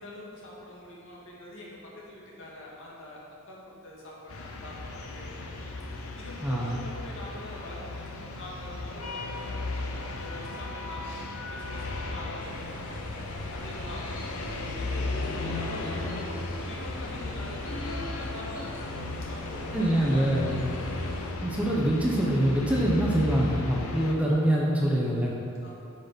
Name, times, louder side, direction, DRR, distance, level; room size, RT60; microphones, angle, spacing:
voice 1, 0.0-1.8 2.1-3.2 3.5-5.2 5.8-11.2 11.5-19.0 19.3-21.1 25.6-25.7, left 1 dB, 60° left, -5 dB, 2.1 m, -45 dB
sound 1, 4.3-24.1, left 2 dB, 75° left, 0.9 m, -35 dB
voice 2, 6.4-6.8 19.7-20.6 21.4-25.3, right 1 dB, 5° right, -4 dB, 0.9 m, -25 dB
sound 2, 12.4-21.3, equal, 40° left, 1.7 m, -45 dB
8.1 x 6.8 x 5.3 m, 2.5 s
head